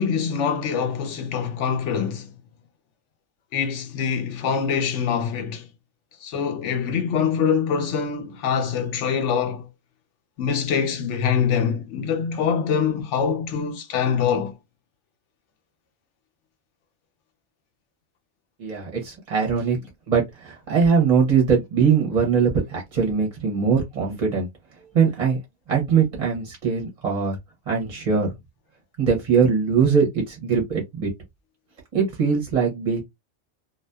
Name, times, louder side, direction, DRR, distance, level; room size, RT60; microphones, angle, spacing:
voice 1, 0.0-2.3 3.5-5.7 6.2-9.7 10.4-14.6 19.7-19.8, left 7 dB, 85° left, 1.0 m, -24 dB
voice 2, 18.6-19.8 20.1-24.5 24.9-25.4 25.7-27.4 27.7-28.3 29.0-31.1 31.9-33.0, right 6 dB, 40° right, 0.8 m, -21 dB
2.6 x 2.3 x 2.2 m
omnidirectional pair, 1.2 m